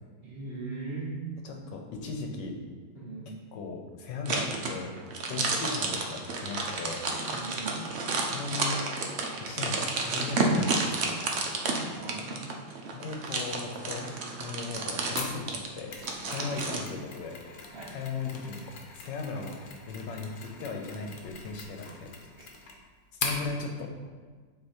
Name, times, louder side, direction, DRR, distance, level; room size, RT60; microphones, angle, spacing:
voice 1, 0.2-1.2 2.9-3.3 5.3-5.5 7.3-7.8 12.0-12.6 16.2-16.5 17.7-17.9, right 3 dB, 40° right, -6 dB, 1.0 m, -39 dB
voice 2, 1.4-2.6 3.3-4.9 5.3-7.0 8.3-8.8 9.5-9.8 10.0-11.4 12.9-14.1 14.4-15.9 16.3-17.4 17.9-19.6 19.9-20.3 20.6-22.1 23.2-23.9, left 4 dB, 80° left, 2 dB, 1.4 m, -37 dB
sound 1, 4.3-16.8, right 3 dB, 65° right, 0.7 m, -31 dB
Mechanisms, 15.2-23.5, left 4 dB, 60° left, 1.1 m, -41 dB
7.8 x 3.1 x 4.4 m, 1.5 s
omnidirectional pair, 1.9 m